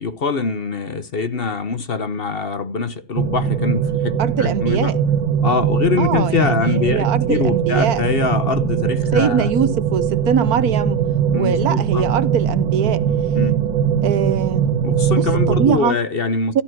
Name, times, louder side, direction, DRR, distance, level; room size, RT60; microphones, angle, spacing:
voice 1, 0.0-5.0 5.4-9.5 11.3-12.1 13.3-13.6 14.8-16.6, left 4 dB, 40° left, 0.9 m, -23 dB
sound 1, 3.2-15.8, right 8 dB, 85° right, 2.1 m, -20 dB
voice 2, 4.2-4.9 6.0-8.0 9.1-11.0 11.4-13.0 14.0-14.7 15.2-16.0 16.5-16.6, right 7 dB, 60° right, 1.3 m, -22 dB
14.5 x 12.0 x 6.1 m
omnidirectional pair, 2.0 m